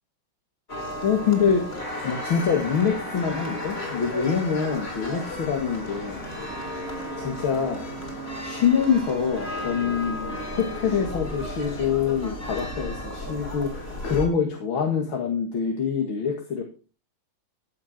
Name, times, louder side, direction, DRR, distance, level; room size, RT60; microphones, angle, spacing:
sound 1, 0.7-14.3, equal, 30° left, 3.8 m, -34 dB
voice 1, 1.0-1.6 2.0-6.2 7.2-7.9 8.4-16.6, left 6 dB, 75° left, 1 dB, 2.8 m, -25 dB
sound 2, 1.8-9.6, left 1 dB, 55° left, 5.2 m, -40 dB
15.0 x 8.5 x 4.4 m, 0.36 s
omnidirectional pair, 2.2 m